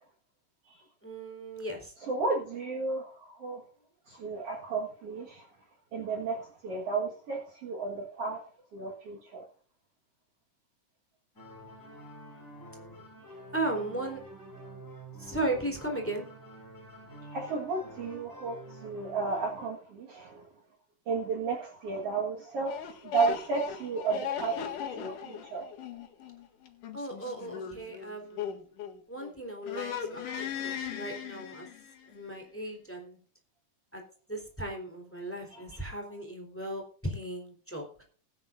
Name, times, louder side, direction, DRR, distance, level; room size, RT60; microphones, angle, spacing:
voice 1, 1.0-1.9 13.5-14.2 15.2-16.3 26.9-28.5 29.1-31.7 32.1-33.2 33.9-34.0 34.3-38.0, right 1 dB, 5° left, 2 dB, 3.3 m, -36 dB
voice 2, 2.1-3.6 4.1-5.5 5.9-8.5 8.7-9.4 17.3-20.5 21.1-24.6 25.0-25.6 35.5-35.6, right 4 dB, 55° right, 0 dB, 2.4 m, -33 dB
sound 1, 11.4-19.7, right 1 dB, 25° left, 6.0 m, -48 dB
sound 2, 22.7-29.3 29.6-32.1, left 8 dB, 85° left, 3.3 m, -38 dB
20.0 x 10.0 x 2.6 m, 0.42 s
omnidirectional pair, 3.6 m